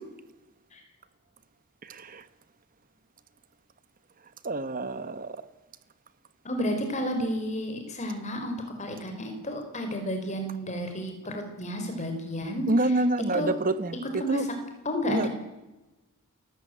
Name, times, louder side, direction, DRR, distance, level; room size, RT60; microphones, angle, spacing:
voice 1, 1.8-2.2 4.4-5.4 12.7-14.4 15.1-15.3, right 2 dB, 40° right, 1.3 m, -27 dB
voice 2, 6.4-12.7 13.3-13.6 14.2-14.5 14.8-15.3, equal, 35° left, 4.8 m, -31 dB
29.0 x 14.5 x 9.4 m
head